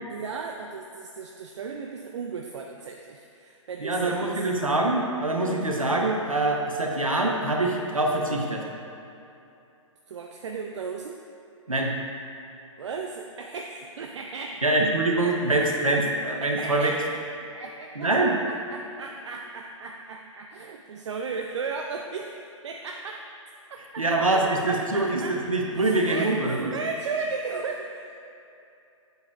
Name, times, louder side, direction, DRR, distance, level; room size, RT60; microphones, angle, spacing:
voice 1, 0.1-4.5 10.1-11.2 12.8-14.6 15.9-16.0 16.4-17.0 17.4-22.3 22.6-23.2 23.7-24.0 24.7-25.4 25.8-28.2, right 4 dB, 60° right, 2 dB, 0.4 m, -35 dB
voice 2, 3.8-8.6 11.7-11.9 14.6-16.9 18.0-18.4 24.0-26.7, right 2 dB, 90° right, 0 dB, 1.0 m, -24 dB
7.9 x 7.0 x 2.4 m, 2.8 s
figure-of-eight pair, 120°, 17 cm